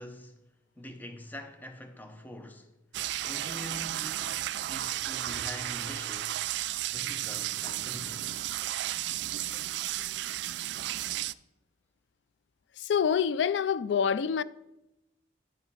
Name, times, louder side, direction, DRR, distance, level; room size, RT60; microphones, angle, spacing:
voice 1, 0.0-2.7 3.2-6.5 6.9-8.4, left 1 dB, 10° left, 0.7 m, -45 dB
sound 1, 2.9-11.3, right 14 dB, 65° right, 0.3 m, -33 dB
voice 2, 12.8-14.4, left 7 dB, 70° left, 0.3 m, -26 dB
10.5 x 5.0 x 5.5 m
head